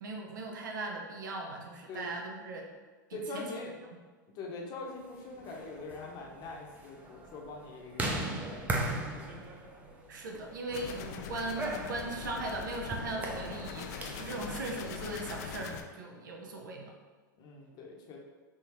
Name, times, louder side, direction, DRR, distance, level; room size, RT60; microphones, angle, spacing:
voice 1, 0.0-2.7 3.1-3.6 10.1-17.0, right 2 dB, 70° right, 1 dB, 0.6 m, -39 dB
voice 2, 3.1-3.7 4.3-9.1 14.5-14.6 17.4-18.2, left 3 dB, 40° left, -1 dB, 0.8 m, -43 dB
sound 1, 5.3-14.4, right 2 dB, 15° right, 0.5 m, -39 dB
sound 2, 10.7-15.8, left 6 dB, 55° left, 0.4 m, -42 dB
3.5 x 2.7 x 3.0 m, 1.4 s
hypercardioid pair, 95°, 11 cm